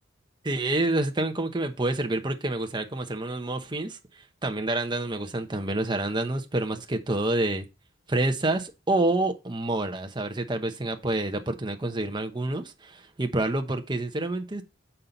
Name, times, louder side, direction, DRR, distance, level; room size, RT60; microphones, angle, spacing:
voice 1, 0.4-7.7 8.1-14.6, right 2 dB, 25° right, 0.9 m, -28 dB
7.4 x 5.7 x 4.0 m
head